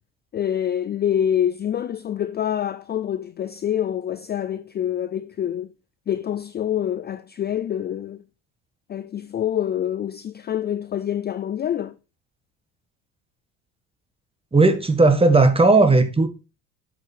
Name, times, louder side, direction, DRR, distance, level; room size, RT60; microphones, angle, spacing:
voice 1, 0.3-5.7 6.1-8.2 8.9-12.0, left 10 dB, 30° left, 0.4 m, -26 dB
voice 2, 14.5-16.3, right 3 dB, 15° right, 1.6 m, -16 dB
7.8 x 6.1 x 4.4 m
supercardioid pair, 80°, 37 cm